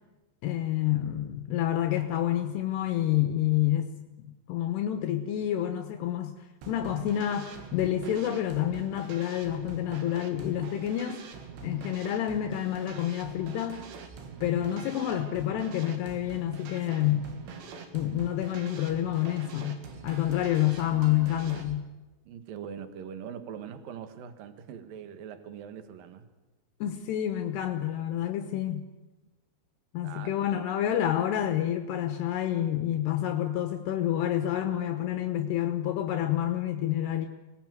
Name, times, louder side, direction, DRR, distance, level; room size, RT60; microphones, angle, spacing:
voice 1, 0.4-3.9 4.5-6.3 6.7-11.2 11.6-13.9 14.4-17.3 17.9-21.9 26.8-28.8 29.9-37.3, left 12 dB, 80° left, 7 dB, 3.2 m, -28 dB
sound 1, 6.6-21.7, right 6 dB, 90° right, 4.6 m, -44 dB
voice 2, 22.3-26.3 30.0-30.3 31.4-31.6, right 8 dB, 60° right, 9 dB, 3.2 m, -42 dB
25.5 x 19.5 x 9.5 m, 1.1 s
omnidirectional pair, 4.8 m